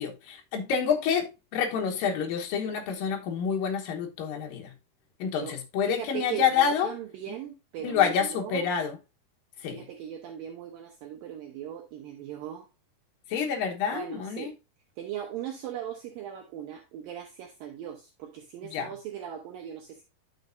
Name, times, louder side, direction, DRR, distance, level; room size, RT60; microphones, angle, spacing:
voice 1, 0.0-4.7 5.2-6.9 7.8-9.0 9.6-9.8 13.3-14.5 18.7-18.9, left 7 dB, 65° left, 2.6 m, -28 dB
voice 2, 5.2-5.6 5.8-8.7 9.7-12.7 13.9-14.5 15.0-20.0, right 10 dB, 70° right, 2.3 m, -39 dB
11.0 x 5.9 x 2.6 m
omnidirectional pair, 4.7 m